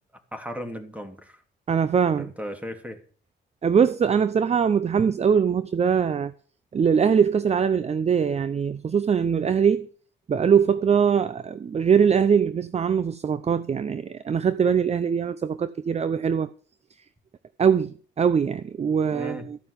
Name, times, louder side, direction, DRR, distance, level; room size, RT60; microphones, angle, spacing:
voice 1, 0.3-1.4 2.1-3.0 19.1-19.5, equal, 5° right, 2.8 m, -36 dB
voice 2, 1.7-2.3 3.6-6.3 6.7-9.9 10.3-16.5 17.6-19.6, right 7 dB, 35° right, 0.6 m, -22 dB
14.5 x 5.6 x 9.6 m
cardioid pair, 90°, 20 cm